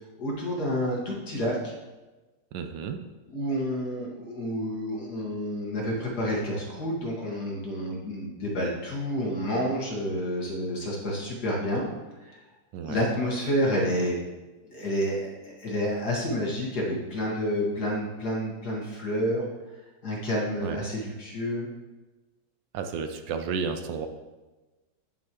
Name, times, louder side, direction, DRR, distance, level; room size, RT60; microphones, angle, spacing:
voice 1, 0.2-1.7 3.3-11.9 12.2-12.4 12.9-14.2 14.7-19.4 20.0-21.7, equal, 55° left, -3 dB, 2.2 m, -29 dB
voice 2, 2.5-3.0 12.7-13.1 20.6-20.8 22.7-24.1, right 6 dB, 75° right, 7 dB, 1.3 m, -32 dB
8.7 x 7.5 x 3.0 m, 1.2 s
omnidirectional pair, 2.1 m